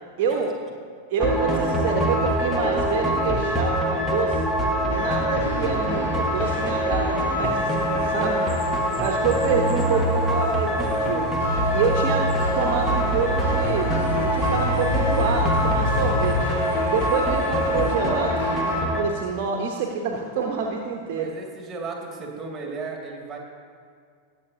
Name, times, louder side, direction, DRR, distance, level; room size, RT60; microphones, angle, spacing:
voice 1, 0.2-0.5 1.1-4.4 4.9-7.7 8.0-8.4 9.0-11.3 11.7-12.3 12.6-13.9 14.2-16.4 16.9-18.6 19.0-21.3, right 5 dB, 45° right, 2 dB, 0.9 m, -27 dB
sound 1, 1.2-19.0, equal, 10° left, 1.4 m, -24 dB
sound 2, 4.9-18.8, left 1 dB, 55° left, 1.4 m, -29 dB
sound 3, 7.4-18.0, left 3 dB, 35° left, 1.2 m, -43 dB
voice 2, 21.1-23.4, right 4 dB, 20° right, 0 dB, 2.1 m, -35 dB
20.0 x 7.7 x 2.8 m, 2.2 s
figure-of-eight pair, 90°, 0 cm